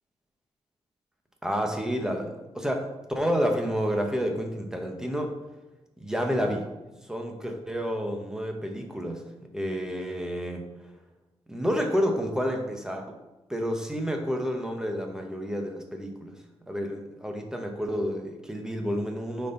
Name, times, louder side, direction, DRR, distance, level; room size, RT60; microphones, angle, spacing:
voice 1, 1.4-5.3 6.0-6.7 7.1-9.2 9.5-10.7 11.5-13.2 13.5-16.4 16.7-19.5, equal, 5° right, 3 dB, 1.1 m, -29 dB
8.9 x 4.4 x 4.0 m, 1.0 s
wide cardioid pair, 110°, 11 cm